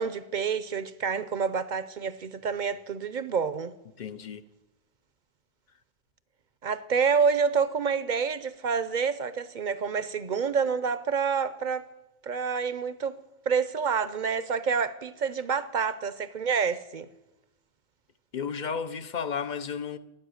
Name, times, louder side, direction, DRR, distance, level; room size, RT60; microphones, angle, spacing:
voice 1, 0.0-3.7 6.6-11.8 12.2-13.2 13.5-17.1, right 6 dB, 55° right, 0.7 m, -28 dB
voice 2, 4.0-4.4 18.3-20.0, left 6 dB, 50° left, 0.7 m, -33 dB
16.0 x 9.9 x 6.4 m
omnidirectional pair, 1.1 m